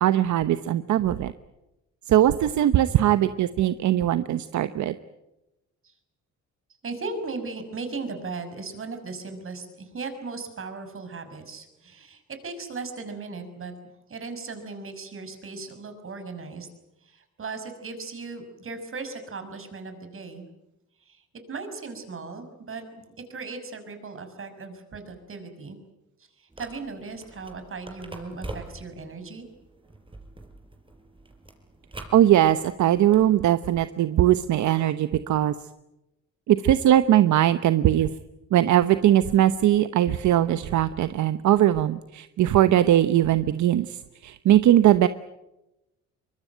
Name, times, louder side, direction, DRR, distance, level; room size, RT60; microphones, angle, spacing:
voice 1, 0.0-1.3 2.1-4.9 32.1-35.5 36.5-38.1 38.5-44.0 44.2-45.1, right 12 dB, 70° right, 12 dB, 1.0 m, -20 dB
voice 2, 6.8-13.8 14.1-16.7 17.0-20.5 21.1-23.0 23.3-25.8 26.2-29.5, right 4 dB, 45° right, 8 dB, 6.1 m, -37 dB
sound 1, 26.5-33.4, right 2 dB, 15° right, 4.9 m, -44 dB
24.0 x 22.5 x 9.2 m, 0.94 s
cardioid pair, 90°, 30 cm